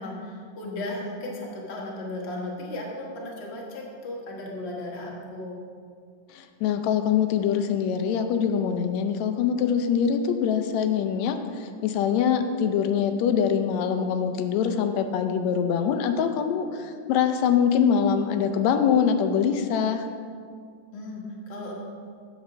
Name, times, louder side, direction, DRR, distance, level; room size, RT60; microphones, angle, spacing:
voice 1, 0.0-5.6 20.9-21.8, left 1 dB, 55° left, -2 dB, 0.7 m, -35 dB
voice 2, 6.3-20.1, left 7 dB, 80° left, 7 dB, 1.8 m, -24 dB
8.1 x 5.5 x 6.1 m, 2.1 s
omnidirectional pair, 3.3 m